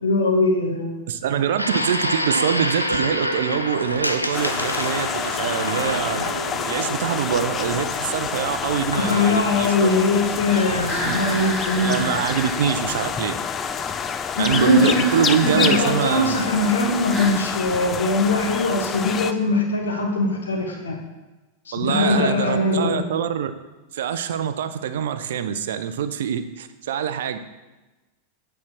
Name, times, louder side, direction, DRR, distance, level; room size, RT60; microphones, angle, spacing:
voice 1, 0.0-1.0 8.9-12.0 14.4-15.0 15.4-21.0 21.7-23.0, left 2 dB, 70° left, 2 dB, 1.2 m, -21 dB
voice 2, 1.1-6.2 6.7-9.9 11.0-11.2 11.8-13.4 14.4-16.5 21.7-23.5 23.9-27.4, right 8 dB, 60° right, 11 dB, 0.5 m, -24 dB
sound 1, 1.6-11.5, equal, 90° left, 0.5 m, -29 dB
sound 2, 4.3-19.3, left 7 dB, 25° left, 0.4 m, -28 dB
sound 3, 10.9-12.6 14.5-15.9 17.1-17.4, equal, ahead, 1.4 m, -31 dB
8.7 x 4.5 x 5.9 m, 1.1 s
figure-of-eight pair, 90°, 0 cm